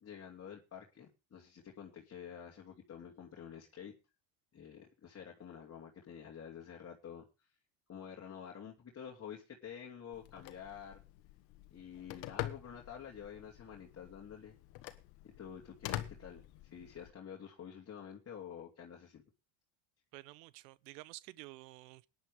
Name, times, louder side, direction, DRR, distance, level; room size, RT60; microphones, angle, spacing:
voice 1, 0.0-3.9 4.5-7.2 7.9-11.0 11.7-14.5 15.2-19.2, left 8 dB, 30° left, 2.8 m, -49 dB
Telephone, 10.1-17.1, left 15 dB, 80° left, 1.6 m, -46 dB
voice 2, 20.1-22.1, right 19 dB, 90° right, 0.9 m, -51 dB
18.5 x 10.5 x 3.5 m
supercardioid pair, 100°, 47 cm